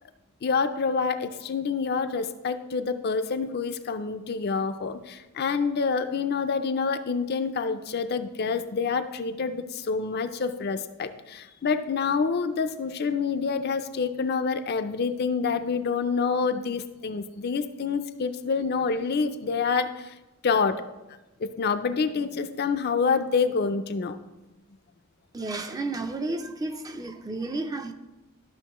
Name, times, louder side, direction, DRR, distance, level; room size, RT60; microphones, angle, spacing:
voice 1, 0.4-20.1 20.4-20.9 21.4-24.2, left 5 dB, 50° left, 9 dB, 0.4 m, -27 dB
voice 2, 25.3-27.9, right 2 dB, 15° right, 7 dB, 0.4 m, -32 dB
12.0 x 6.2 x 3.0 m, 1.0 s
head